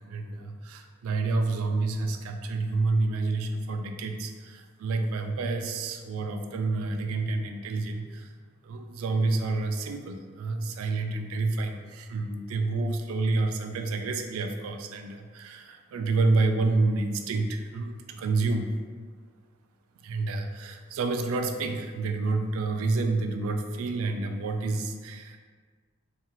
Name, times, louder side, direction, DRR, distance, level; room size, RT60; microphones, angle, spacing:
voice 1, 0.1-8.3 8.6-18.7 20.0-25.4, right 3 dB, 75° right, 5 dB, 0.3 m, -29 dB
2.8 x 2.3 x 2.9 m, 1.5 s
head